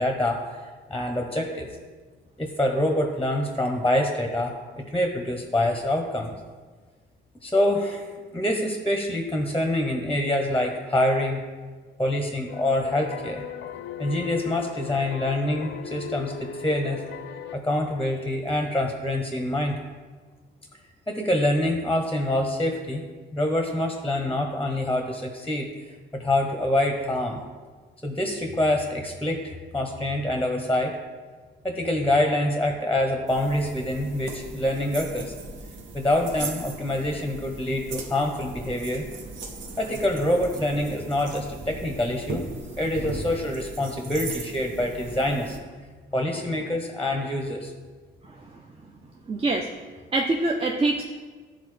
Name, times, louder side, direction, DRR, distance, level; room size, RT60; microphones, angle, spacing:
voice 1, 0.0-1.7 2.4-4.5 4.9-6.3 7.4-8.1 8.3-11.4 12.0-13.4 14.0-17.0 17.5-19.7 21.1-23.0 23.3-25.7 26.1-27.4 28.0-31.0 31.6-35.3 35.9-39.0 39.8-42.4 42.8-45.6 46.1-47.7, left 1 dB, 5° left, 2 dB, 0.7 m, -26 dB
sound 1, 12.5-17.6, left 7 dB, 70° left, 0.5 m, -38 dB
sound 2, 33.3-45.6, right 3 dB, 70° right, 0.9 m, -38 dB
voice 2, 48.2-48.6 49.3-49.7 50.1-51.0, right 2 dB, 30° right, 1 dB, 0.5 m, -25 dB
11.0 x 3.9 x 3.3 m, 1.4 s
cardioid pair, 90°, 20 cm